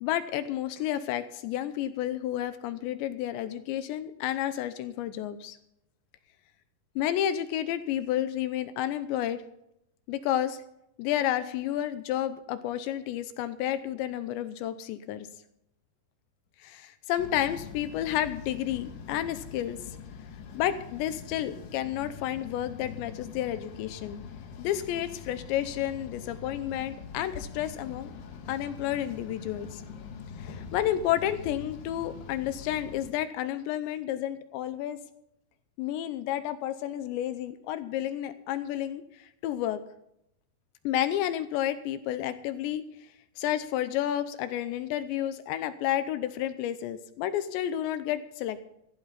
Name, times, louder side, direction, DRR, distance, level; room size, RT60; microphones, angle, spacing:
voice 1, 0.0-5.6 7.0-9.4 10.1-10.6 11.0-15.3 16.6-19.8 20.5-24.2 24.6-28.1 28.5-29.8 30.4-35.0 35.8-39.8 40.8-42.8 43.4-48.6, left 11 dB, 80° left, 12 dB, 2.7 m, -31 dB
sound 1, 17.2-33.1, left 6 dB, 65° left, 2.5 m, -43 dB
15.5 x 15.0 x 4.1 m, 0.79 s
omnidirectional pair, 5.9 m